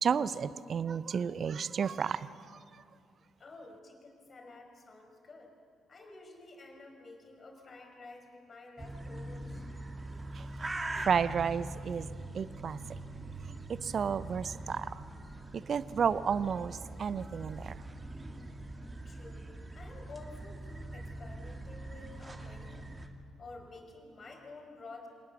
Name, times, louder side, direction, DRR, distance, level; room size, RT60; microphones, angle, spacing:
voice 1, 0.0-2.6 10.3-12.1 12.3-12.8 13.7-15.0 15.5-17.8, right 7 dB, 50° right, 17 dB, 0.7 m, -32 dB
voice 2, 3.4-5.5 5.9-9.6 19.0-22.9 23.4-25.1, left 3 dB, 40° left, 3 dB, 5.4 m, -51 dB
sound 1, 8.8-23.1, right 1 dB, 25° right, 2.3 m, -43 dB
26.5 x 19.0 x 7.0 m, 2.4 s
hypercardioid pair, 45°, 0 cm